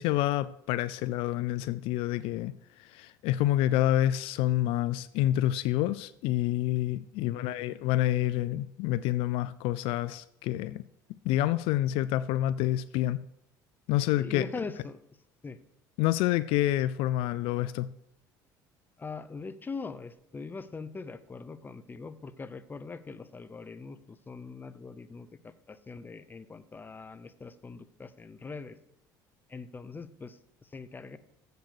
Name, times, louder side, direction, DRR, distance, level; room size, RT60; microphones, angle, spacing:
voice 1, 0.0-10.8 11.2-13.2 13.9-14.5 16.0-17.9, left 14 dB, 70° left, 0.4 m, -28 dB
voice 2, 7.2-7.5 14.2-15.0 15.4-15.6 19.0-28.8 29.5-31.2, left 4 dB, 20° left, 0.7 m, -42 dB
7.8 x 6.7 x 6.5 m
supercardioid pair, 85°, 10 cm